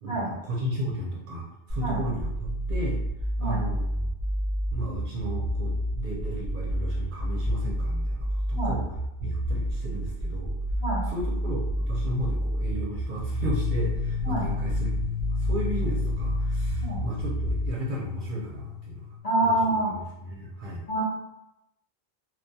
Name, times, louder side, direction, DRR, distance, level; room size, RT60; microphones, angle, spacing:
voice 1, 0.0-3.0 3.4-4.1 4.7-8.9 9.2-10.6 11.1-15.0 15.3-19.1 19.4-19.5 19.8-20.8, right 1 dB, 60° right, -4 dB, 0.6 m, -34 dB
sound 1, 1.7-17.7, equal, 30° right, 0.8 m, -29 dB
sound 2, 13.3-19.2, left 9 dB, 70° left, 0.7 m, -33 dB
voice 2, 19.2-19.9 20.9-21.0, right 1 dB, 40° left, -8 dB, 0.9 m, -26 dB
2.3 x 2.2 x 2.6 m, 0.89 s
omnidirectional pair, 1.0 m